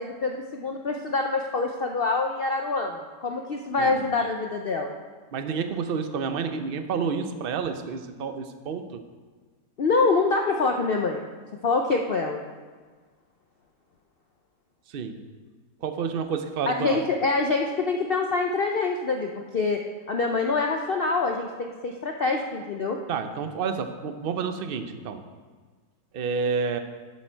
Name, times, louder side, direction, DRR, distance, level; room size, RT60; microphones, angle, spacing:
voice 1, 0.0-4.9 9.8-11.2 11.6-12.4 16.7-19.8 20.1-23.0, left 3 dB, 80° left, 3 dB, 0.5 m, -25 dB
voice 2, 5.3-9.0 14.9-15.2 15.8-17.0 23.1-25.2 26.1-26.8, right 5 dB, 70° right, 8 dB, 0.5 m, -29 dB
11.0 x 7.4 x 4.5 m, 1.5 s
omnidirectional pair, 1.8 m